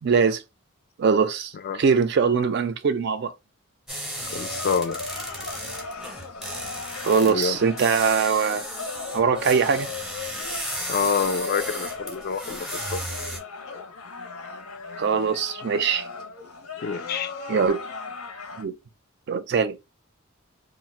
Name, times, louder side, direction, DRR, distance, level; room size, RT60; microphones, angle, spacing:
voice 1, 0.0-0.4 1.0-3.3 7.0-8.7 9.1-9.9 15.0-16.1 17.5-17.8 18.6-18.7 19.3-19.8, right 5 dB, 50° right, 0.4 m, -22 dB
sound 1, 3.9-13.4, right 1 dB, ahead, 0.6 m, -35 dB
sound 2, 4.2-18.6, left 4 dB, 85° left, 0.6 m, -37 dB
voice 2, 4.3-5.0 7.2-7.6 10.9-13.0 16.8-17.6, left 6 dB, 45° left, 0.3 m, -27 dB
2.4 x 2.1 x 3.9 m
head